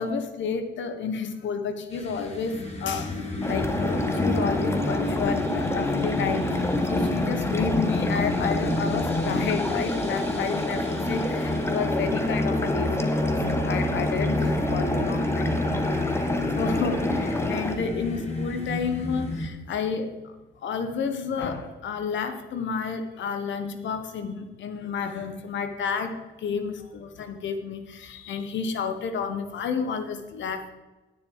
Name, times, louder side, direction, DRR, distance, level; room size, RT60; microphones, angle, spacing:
voice 1, 0.0-3.2 3.5-15.5 16.1-20.3 20.6-30.7, left 5 dB, 70° left, 8 dB, 1.4 m, -31 dB
sound 1, 1.9-19.5, left 2 dB, 30° left, 2.2 m, -29 dB
sound 2, 3.4-17.8, left 1 dB, 10° left, 1.3 m, -29 dB
10.0 x 9.2 x 4.7 m, 1.1 s
cardioid pair, 90°, 20 cm